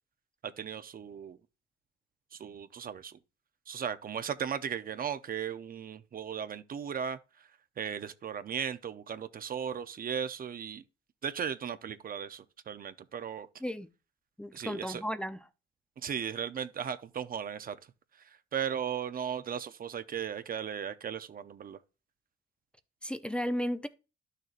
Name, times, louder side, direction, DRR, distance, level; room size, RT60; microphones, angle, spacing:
voice 1, 0.4-1.4 2.3-3.2 3.7-7.5 7.8-10.8 11.2-13.5 14.5-15.0 16.0-17.8 18.5-21.8, right 8 dB, 45° right, 0.7 m, -36 dB
voice 2, 14.4-15.4 23.0-23.9, equal, 5° left, 0.6 m, -34 dB
12.0 x 6.6 x 2.5 m
cardioid pair, 90°, 20 cm